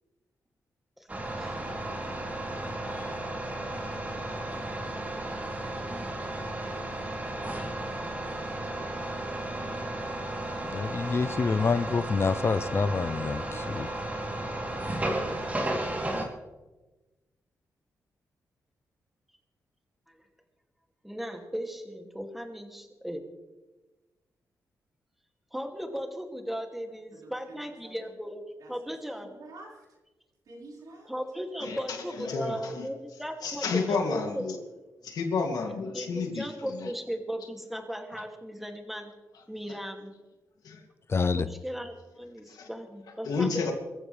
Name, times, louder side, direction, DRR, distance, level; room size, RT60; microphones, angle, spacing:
sound 1, 1.1-16.2, right 1 dB, 25° right, 3.2 m, -34 dB
voice 1, 10.6-13.9 41.1-41.5, left 4 dB, 40° left, 14 dB, 0.6 m, -27 dB
voice 2, 21.0-23.2 25.5-28.4 28.7-29.3 31.1-34.7 35.9-39.1 39.5-40.1 41.3-43.7, equal, 5° right, 3 dB, 2.5 m, -37 dB
voice 3, 27.1-28.1 28.6-28.7 29.2-29.8 30.4-31.1, right 2 dB, 75° right, -2 dB, 5.1 m, -49 dB
voice 4, 31.6-32.9 33.4-34.6 35.0-36.9 38.1-38.2 40.6-40.8 42.5-42.7 43.2-43.7, left 4 dB, 80° left, 3 dB, 2.6 m, -31 dB
24.0 x 14.5 x 3.4 m, 1.1 s
cardioid pair, 95°, 7 cm